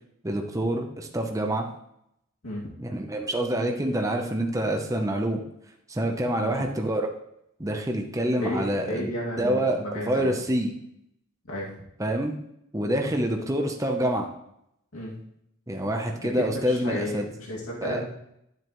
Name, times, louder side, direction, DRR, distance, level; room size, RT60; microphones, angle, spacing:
voice 1, 0.2-1.7 2.8-5.4 5.9-7.1 7.6-9.1 9.4-10.7 12.0-12.3 12.7-14.3 15.7-17.3 17.8-18.0, right 1 dB, 15° right, 3 dB, 0.8 m, -26 dB
voice 2, 2.4-2.8 6.4-6.5 8.3-10.4 11.4-11.7 14.9-15.2 16.2-18.1, left 1 dB, 80° left, -5 dB, 2.4 m, -33 dB
11.5 x 7.7 x 3.1 m, 0.78 s
head